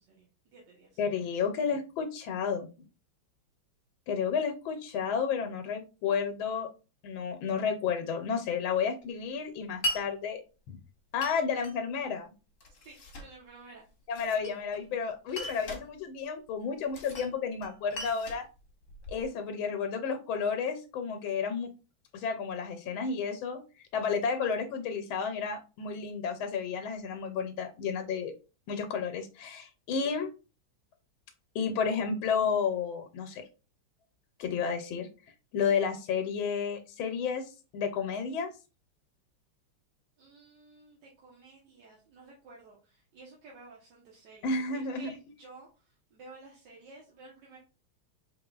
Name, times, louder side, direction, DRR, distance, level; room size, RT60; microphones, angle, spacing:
voice 1, 0.0-1.0 12.8-13.9 40.2-47.6, right 3 dB, 65° right, -4 dB, 1.6 m, -53 dB
voice 2, 1.0-2.7 4.1-6.7 7.0-10.4 10.7-10.8 11.1-12.3 14.1-18.4 19.1-21.7 22.1-23.6 23.9-28.3 28.7-30.3 31.5-33.4 34.4-35.1 35.5-38.5 44.4-45.1, left 6 dB, 90° left, 7 dB, 1.4 m, -31 dB
Glass, 9.8-10.0 11.2-11.8 12.6-13.3 14.1-14.8 15.3-15.9 16.9-17.3 17.6-19.3, left 1 dB, 50° left, 1.1 m, -38 dB
4.2 x 3.5 x 2.2 m, 0.32 s
omnidirectional pair, 2.2 m